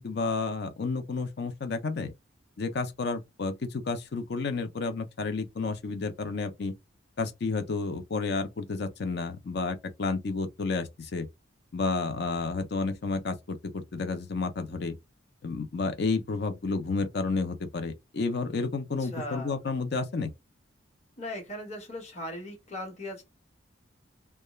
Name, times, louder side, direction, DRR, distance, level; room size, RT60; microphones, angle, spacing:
voice 1, 0.0-2.1 2.6-6.7 7.2-11.3 11.7-15.0 15.4-20.3, left 3 dB, 55° left, 0.5 m, -31 dB
voice 2, 19.0-19.6 21.2-23.2, left 1 dB, 35° left, 1.0 m, -38 dB
2.2 x 2.2 x 3.0 m
head